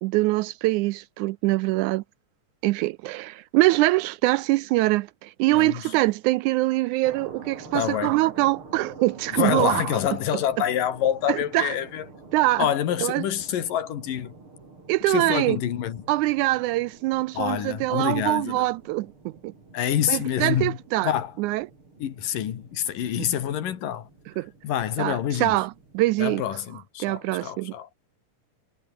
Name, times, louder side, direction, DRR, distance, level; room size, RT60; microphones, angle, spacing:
voice 1, 0.0-2.0 2.6-10.0 11.3-11.7 12.3-12.7 13.0-13.3 14.9-15.6 16.1-19.5 20.1-21.1 21.4-21.7 24.4-24.5 25.0-26.4 27.0-27.7, right 19 dB, 80° right, 1.8 m, -24 dB
voice 2, 5.5-5.9 7.7-8.2 9.4-12.1 12.6-14.3 15.1-16.1 17.4-18.7 19.7-21.3 22.0-24.1 24.6-25.6 26.2-27.9, left 10 dB, 85° left, 3.6 m, -27 dB
sound 1, 7.0-26.3, right 3 dB, 40° right, 6.9 m, -48 dB
omnidirectional pair, 3.7 m